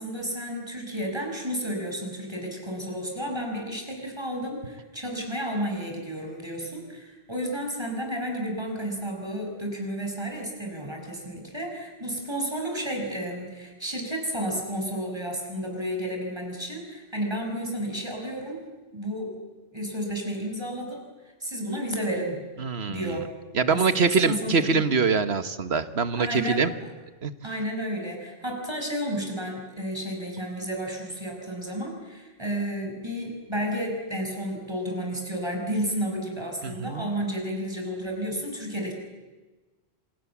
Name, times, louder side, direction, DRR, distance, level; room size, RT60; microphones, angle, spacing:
voice 1, 0.0-18.7 18.9-19.4 19.7-21.0 21.4-22.4 22.9-23.3 23.7-24.8 26.2-26.7 27.4-38.9, equal, 25° right, 2 dB, 6.4 m, -32 dB
voice 2, 22.6-23.2 23.5-26.7 27.2-27.3 36.6-37.1, right 5 dB, 70° right, 11 dB, 1.6 m, -24 dB
28.0 x 27.5 x 7.3 m, 1.3 s
omnidirectional pair, 1.1 m